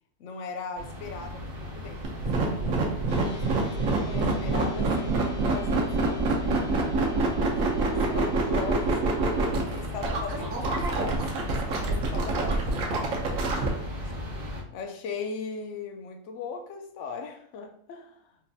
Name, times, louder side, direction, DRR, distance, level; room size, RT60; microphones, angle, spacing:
voice 1, 0.2-9.0 9.7-13.0 14.7-18.2, left 5 dB, 70° left, 5 dB, 0.8 m, -39 dB
sound 1, 0.7-14.6, left 1 dB, 50° right, 0.8 m, -37 dB
sound 2, 2.0-13.7, right 3 dB, 80° right, 1.1 m, -26 dB
sound 3, 3.1-9.6, left 9 dB, 90° left, 1.1 m, -43 dB
4.0 x 2.6 x 2.2 m, 0.66 s
omnidirectional pair, 1.4 m